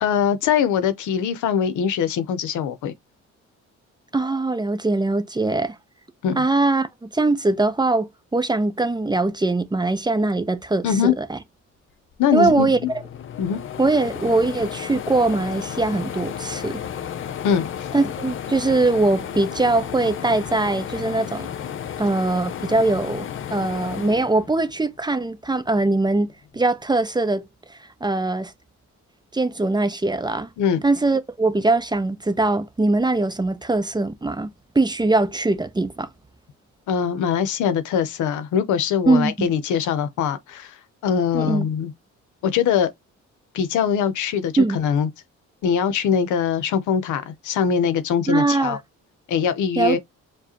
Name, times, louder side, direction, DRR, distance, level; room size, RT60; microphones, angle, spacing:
voice 1, 0.0-2.9 6.2-6.4 10.8-11.1 12.2-12.7 13.4-13.6 17.4-17.9 30.6-30.8 36.9-40.7 41.0-41.9 42.4-42.9 43.5-45.1 45.6-48.8 49.3-50.0, left 7 dB, 80° left, 0.8 m, -22 dB
voice 2, 4.1-5.8 6.3-6.9 7.1-11.4 12.3-13.0 13.8-16.8 17.9-21.5 22.0-27.4 27.7-28.5 29.3-30.5 30.8-34.5 34.7-36.1 39.1-39.5 41.3-41.6 44.6-44.8 48.3-48.8 49.8-50.0, right 2 dB, 15° right, 0.6 m, -21 dB
sound 1, 12.1-12.2 12.5-25.1 25.5-26.6, left 9 dB, 45° left, 0.5 m, -33 dB
4.8 x 2.3 x 2.8 m
cardioid pair, 90°, 30 cm